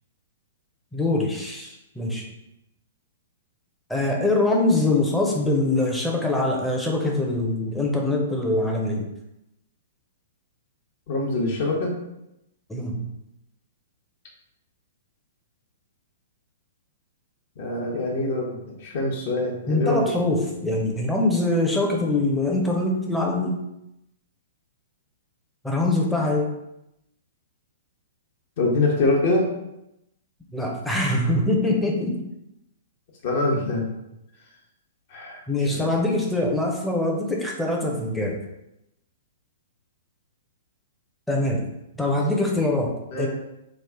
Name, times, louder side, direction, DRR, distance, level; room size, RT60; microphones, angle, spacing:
voice 1, 0.9-2.3 3.9-9.1 12.7-13.1 19.7-23.6 25.6-26.5 30.5-32.2 35.5-38.4 41.3-41.6 42.0-43.3, left 2 dB, 5° left, -1 dB, 0.6 m, -23 dB
voice 2, 11.1-11.9 17.6-20.0 28.6-29.5 33.2-33.9 35.1-35.4 35.7-35.9 43.1-43.3, left 2 dB, 50° left, -1 dB, 0.9 m, -24 dB
3.2 x 2.4 x 3.6 m, 0.87 s
figure-of-eight pair, 110°, 0 cm